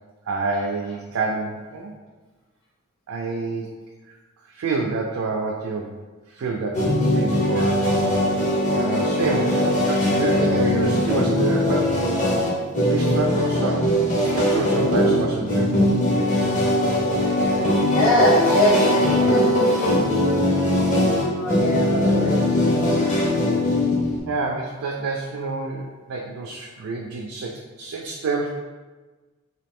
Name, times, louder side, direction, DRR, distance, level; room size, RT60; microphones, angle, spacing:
voice 1, 0.3-1.9 3.1-3.7 4.1-4.2 4.5-6.0 6.3-8.2 8.8-12.0 12.8-15.8 24.3-28.5, right 3 dB, 80° right, 0 dB, 0.4 m, -28 dB
sound 1, 6.7-24.2, left 1 dB, 35° left, 0.7 m, -20 dB
voice 2, 17.8-19.5 21.2-23.2, left 1 dB, 70° left, -9 dB, 1.5 m, -22 dB
3.0 x 2.4 x 3.6 m, 1.3 s
head